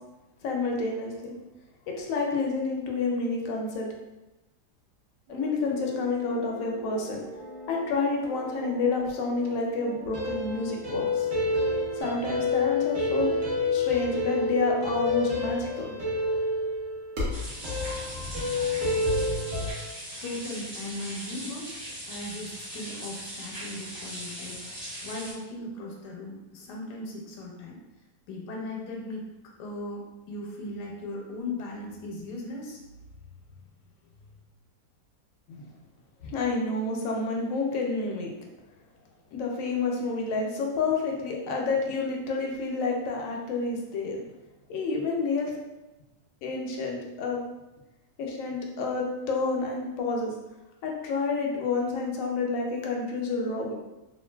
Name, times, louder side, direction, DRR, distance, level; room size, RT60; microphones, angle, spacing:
voice 1, 0.4-1.3 1.9-3.9 5.3-7.2 7.7-11.3 11.9-13.3 13.7-15.9 18.2-18.5 35.5-35.6 36.2-38.3 39.3-44.2 44.7-45.5 46.4-47.4 48.2-50.3 50.8-53.7, left 3 dB, 70° left, 0 dB, 0.8 m, -29 dB
sound 1, 5.3-12.0, equal, 75° right, 1.3 m, -42 dB
sound 2, 10.1-19.7, left 2 dB, 55° right, 1.1 m, -28 dB
sound 3, 17.3-25.3, equal, 40° right, 1.3 m, -40 dB
voice 2, 20.2-21.8 22.1-27.8 28.3-29.3 29.6-32.8 33.5-33.6 36.7-36.8, left 2 dB, 85° left, -1 dB, 1.2 m, -38 dB
3.1 x 2.4 x 2.2 m, 1.0 s
omnidirectional pair, 1.8 m